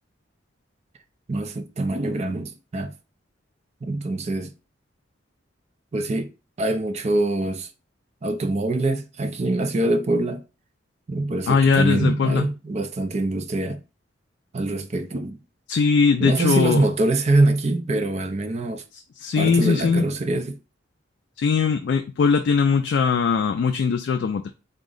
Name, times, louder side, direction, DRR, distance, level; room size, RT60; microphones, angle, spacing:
voice 1, 1.3-2.9 3.8-4.5 5.9-6.3 6.6-7.7 8.2-10.4 11.1-13.8 14.5-15.4 16.2-18.8 19.3-20.6, right 2 dB, 35° right, 0.4 m, -24 dB
voice 2, 11.5-12.5 15.7-16.8 18.9-20.1 21.4-24.5, left 5 dB, 60° left, 0.3 m, -20 dB
3.6 x 2.1 x 3.7 m
head